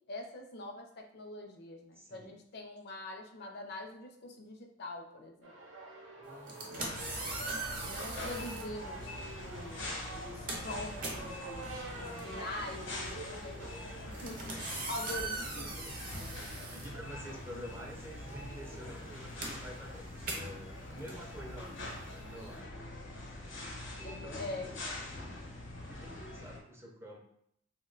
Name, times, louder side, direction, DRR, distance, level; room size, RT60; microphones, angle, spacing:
voice 1, 0.1-5.5 6.7-7.0 7.8-14.0 14.2-14.4 14.9-15.8 21.5-21.8 24.0-24.7, left 2 dB, 60° left, 3 dB, 0.5 m, -44 dB
voice 2, 2.0-2.4 6.1-6.8 14.5-16.1 16.4-22.7 23.9-24.8 25.9-27.2, equal, 15° right, 0 dB, 0.4 m, -49 dB
sound 1, 5.4-22.9, right 2 dB, 85° right, 0.6 m, -49 dB
sound 2, 6.3-8.7 9.6-9.8 10.1-17.6 17.9-22.6, right 3 dB, 45° right, 0.7 m, -42 dB
sound 3, 6.8-26.6, left 2 dB, 85° left, 0.9 m, -44 dB
2.5 x 2.2 x 3.7 m, 0.71 s
head